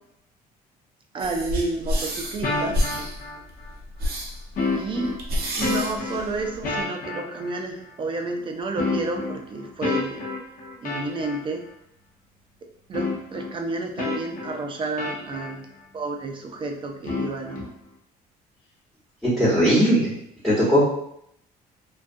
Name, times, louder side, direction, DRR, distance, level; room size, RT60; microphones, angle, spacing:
voice 1, 1.1-2.8 4.8-5.1 5.5-10.3 10.8-11.6 12.9-15.7 15.9-17.7, right 3 dB, 30° right, 3 dB, 0.4 m, -30 dB
sound 1, 1.2-6.8, equal, 65° right, 0.7 m, -29 dB
sound 2, 2.4-3.7 4.6-7.6 8.8-11.4 12.9-13.5 14.0-15.5 17.0-17.7, left 3 dB, 55° left, 0.6 m, -29 dB
voice 2, 19.2-20.1 20.4-20.8, equal, ahead, -8 dB, 1.0 m, -18 dB
2.4 x 2.2 x 2.5 m, 0.73 s
cardioid pair, 110°, 17 cm